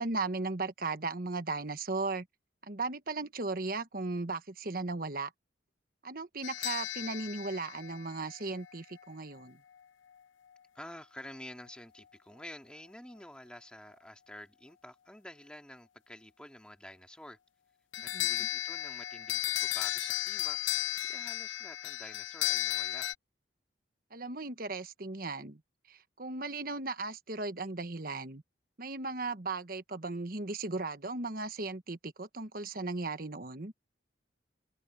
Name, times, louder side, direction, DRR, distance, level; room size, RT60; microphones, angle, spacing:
voice 1, 0.0-2.3 2.6-5.3 6.0-9.6 18.1-18.2 24.1-25.6 25.9-28.4 28.8-33.7, right 3 dB, 50° right, 1.3 m, -36 dB
sound 1, 6.4-8.7 17.9-23.1, left 13 dB, 90° left, 0.8 m, -34 dB
voice 2, 10.7-17.4 18.0-23.1, left 1 dB, 5° left, 2.3 m, -49 dB
head